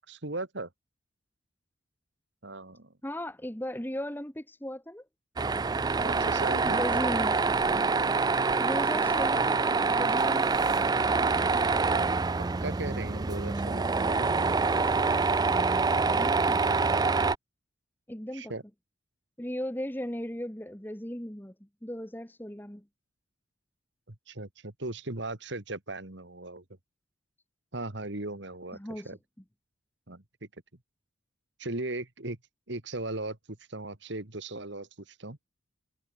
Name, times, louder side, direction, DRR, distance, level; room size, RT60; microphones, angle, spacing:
voice 1, 0.1-0.7 2.4-2.9 6.0-6.8 11.9-12.0 12.6-14.8 18.3-18.6 24.1-26.6 27.7-28.8 29.0-29.2 30.1-30.5 31.6-32.4 32.7-35.4, right 2 dB, 60° right, 2.2 m, -38 dB
voice 2, 3.0-5.0 6.7-7.4 8.6-10.5 16.1-16.6 18.1-18.5 19.4-21.5 21.8-22.8 28.7-29.1, equal, 10° left, 1.5 m, -36 dB
Tools, 5.4-17.4, right 4 dB, 20° right, 0.3 m, -26 dB
head